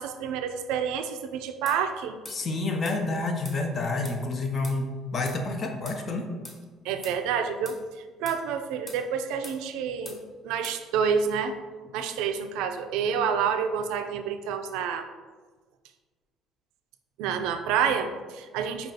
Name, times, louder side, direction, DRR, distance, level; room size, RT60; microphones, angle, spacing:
voice 1, 0.0-2.2 6.8-7.8 8.2-11.5 11.9-15.1 17.2-18.9, right 7 dB, 75° right, 8 dB, 0.3 m, -28 dB
sound 1, 1.7-1.8 2.3-2.4 2.9-3.0 3.4-3.6 4.0-4.2 4.6-4.8 5.3-5.4 5.9-6.0 6.4-6.6 7.0-7.2 7.7-7.8 8.3-8.4 8.9-9.0 9.4-9.6 10.1-10.2 10.6-10.8, equal, 15° left, 1.0 m, -43 dB
voice 2, 2.3-6.3, left 3 dB, 45° left, 4 dB, 0.7 m, -29 dB
4.9 x 2.3 x 3.9 m, 1.4 s
hypercardioid pair, 60°, 0 cm